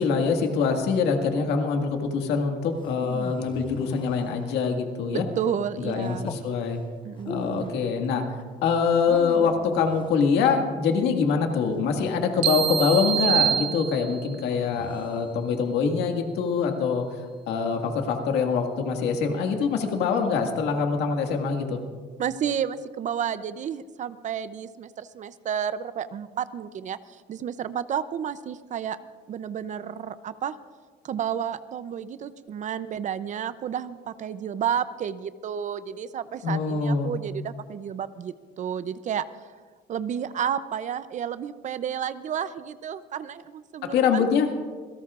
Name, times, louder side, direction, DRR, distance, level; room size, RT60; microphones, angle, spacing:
voice 1, 0.0-5.2 5.8-6.8 7.3-17.2 17.5-21.8 36.4-37.2 43.8-44.5, left 5 dB, 85° left, 4 dB, 1.9 m, -24 dB
sound 1, 2.8-4.8 6.0-6.5 7.2-7.8 8.9-10.2 11.7-12.9 14.5-15.3, left 4 dB, 30° left, 1.0 m, -42 dB
voice 2, 5.1-6.3 7.0-7.7 22.2-29.0 29.3-30.5 31.0-39.2 39.9-44.3, right 8 dB, 45° right, 14 dB, 0.5 m, -31 dB
sound 2, 12.4-14.4, right 8 dB, 75° right, 0.9 m, -25 dB
27.0 x 17.5 x 2.5 m, 1.5 s
cardioid pair, 110°, 17 cm